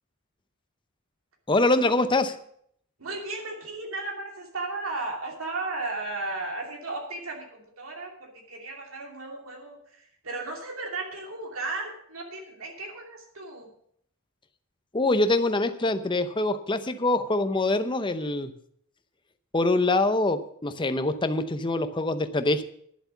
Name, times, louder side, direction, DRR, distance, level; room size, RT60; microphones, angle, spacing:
voice 1, 1.5-2.4 14.9-18.5 19.5-22.6, left 2 dB, 20° left, 10 dB, 0.7 m, -24 dB
voice 2, 3.0-13.7, right 3 dB, 65° right, 1 dB, 2.8 m, -35 dB
10.5 x 7.7 x 7.1 m, 0.67 s
head